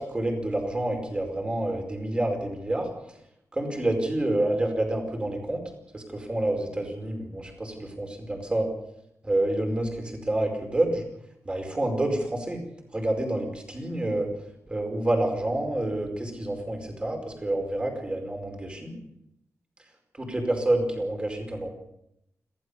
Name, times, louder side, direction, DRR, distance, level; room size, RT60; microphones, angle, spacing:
voice 1, 0.0-2.9 3.5-5.6 5.9-8.7 9.2-11.0 11.4-12.6 12.9-14.3 14.7-19.0 20.2-21.7, right 1 dB, 20° right, 3 dB, 4.9 m, -28 dB
26.5 x 16.0 x 6.9 m, 0.79 s
wide cardioid pair, 165°, 5 cm